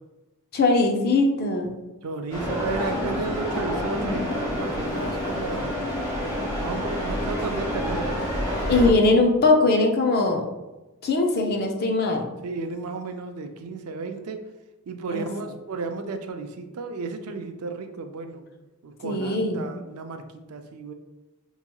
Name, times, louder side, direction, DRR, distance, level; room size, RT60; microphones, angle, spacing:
voice 1, 0.5-1.8 8.7-10.4 11.0-12.3 15.1-15.3 19.0-19.7, left 3 dB, 45° left, 3 dB, 0.5 m, -21 dB
voice 2, 2.0-5.7 6.6-8.2 8.8-8.9 9.2-9.3 12.4-14.4 14.9-18.4 18.8-20.2 20.5-20.9, right 3 dB, 85° right, 7 dB, 0.4 m, -33 dB
sound 1, 2.3-8.9, equal, 20° left, 1.1 m, -28 dB
4.6 x 2.9 x 2.2 m, 1.1 s
head